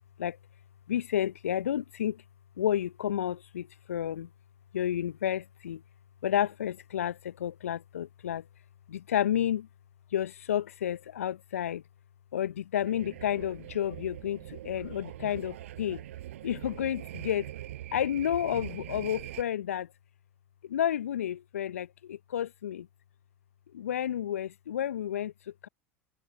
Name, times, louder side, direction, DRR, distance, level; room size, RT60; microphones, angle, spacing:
voice 1, 0.9-2.2 2.6-4.3 4.7-5.8 6.2-8.4 8.9-9.7 10.1-11.8 12.3-16.0 16.4-17.5 17.9-19.9 20.6-22.9 23.7-25.3 25.6-25.7, left 10 dB, 75° left, 0.6 m, -31 dB
sound 1, 12.8-19.4, right 14 dB, 70° right, 6.3 m, -43 dB
figure-of-eight pair, 75°, 8 cm